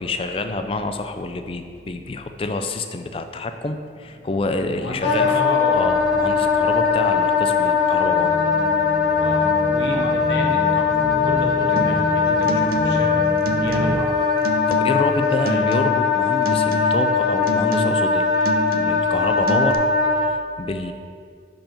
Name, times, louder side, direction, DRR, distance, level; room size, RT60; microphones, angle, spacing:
voice 1, 0.0-5.4 5.7-8.4 9.9-10.0 14.7-19.8 20.1-20.9, left 2 dB, 30° left, 7 dB, 0.3 m, -27 dB
sound 1, 3.9-14.0, right 1 dB, 35° right, 0.9 m, -31 dB
voice 2, 4.7-5.8 9.2-13.2 13.5-14.2 15.4-15.6, left 2 dB, 75° left, 1 dB, 0.9 m, -32 dB
Wind instrument woodwind instrument, 5.0-20.3, left 5 dB, 60° left, 1.2 m, -20 dB
sound 2, 11.8-12.1 12.4-13.1 13.4-14.1 14.4-15.1 15.5-16.2 16.4-17.1 17.5-18.1 18.4-19.1 19.5-19.7, right 2 dB, 50° right, 0.4 m, -28 dB
5.4 x 4.4 x 5.7 m, 2.2 s
head